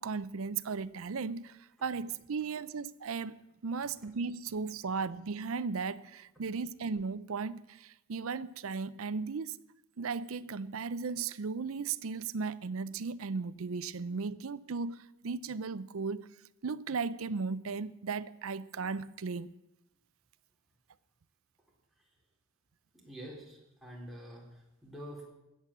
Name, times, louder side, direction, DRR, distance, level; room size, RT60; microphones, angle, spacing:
voice 1, 0.0-9.6 10.0-16.3 16.6-19.5, right 5 dB, 85° right, 0.6 m, -36 dB
voice 2, 22.9-25.3, equal, ahead, 3.8 m, -47 dB
20.5 x 8.2 x 7.4 m
head